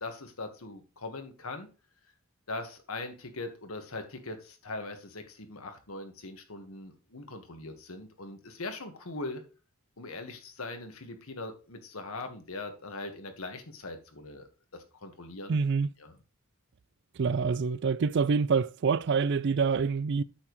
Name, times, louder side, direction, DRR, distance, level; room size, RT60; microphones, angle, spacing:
voice 1, 0.0-1.7 2.5-9.4 10.0-15.6 16.0-16.1, left 2 dB, 85° left, 1.5 m, -41 dB
voice 2, 15.5-15.9 17.2-20.2, right 5 dB, 55° right, 0.4 m, -26 dB
8.8 x 7.2 x 3.1 m
head